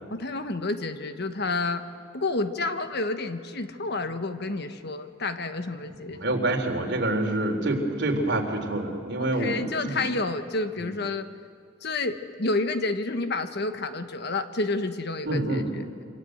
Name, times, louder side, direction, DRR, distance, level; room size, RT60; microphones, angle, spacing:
voice 1, 0.1-1.8 2.1-6.2 9.2-11.3 11.8-15.8, left 3 dB, 60° left, 8 dB, 1.3 m, -29 dB
voice 2, 6.2-10.0 15.3-15.7, right 2 dB, 60° right, 3 dB, 3.7 m, -27 dB
27.0 x 25.5 x 8.0 m, 2.2 s
head